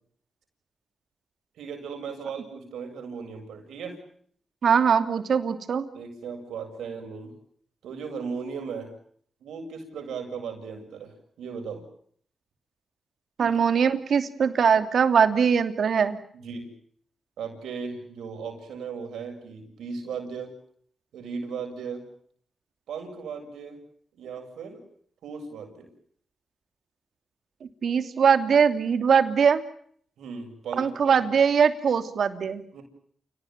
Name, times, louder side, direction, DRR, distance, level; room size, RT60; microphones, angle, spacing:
voice 1, 1.6-4.0 5.9-7.4 7.8-8.9 9.4-11.8 13.4-13.6 16.3-16.7 17.4-20.5 21.1-22.1 22.9-23.8 24.1-24.8 25.2-25.9 30.2-31.4 32.7-32.8, right 5 dB, 90° right, 4 dB, 7.5 m, -37 dB
voice 2, 4.6-5.9 13.4-16.2 27.8-29.6 30.8-32.6, right 6 dB, 75° right, 9 dB, 2.8 m, -21 dB
30.0 x 19.0 x 9.2 m, 0.63 s
supercardioid pair, 45°, 0 cm